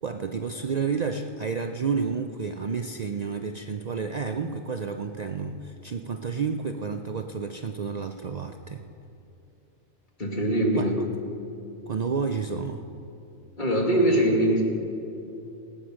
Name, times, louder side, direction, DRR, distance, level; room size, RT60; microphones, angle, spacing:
voice 1, 0.0-8.8 10.7-10.9 11.9-12.9, right 5 dB, 80° right, 6 dB, 0.3 m, -30 dB
voice 2, 10.2-11.0 13.6-14.7, right 1 dB, 35° left, 0 dB, 2.1 m, -22 dB
17.5 x 8.8 x 6.3 m, 2.9 s
omnidirectional pair, 1.4 m